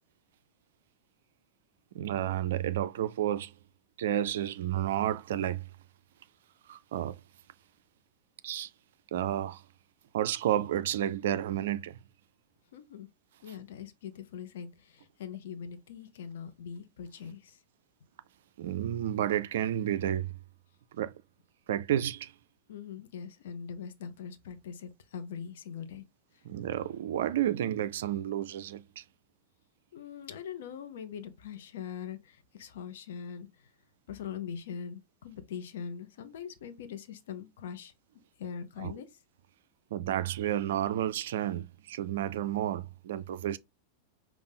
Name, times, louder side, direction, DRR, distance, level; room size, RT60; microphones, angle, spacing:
voice 1, 1.9-3.5 4.0-5.6 6.7-7.2 8.4-8.7 9.1-9.6 10.1-12.0 18.6-20.3 20.9-21.1 21.7-22.3 26.4-29.0 38.8-39.0 39.9-43.6, right 11 dB, 60° right, 0.4 m, -31 dB
voice 2, 12.7-13.1 13.4-17.6 22.7-26.0 29.9-33.5 34.1-37.9 38.4-39.1, left 7 dB, 60° left, 0.8 m, -42 dB
5.3 x 2.4 x 3.9 m
figure-of-eight pair, 90°, 0 cm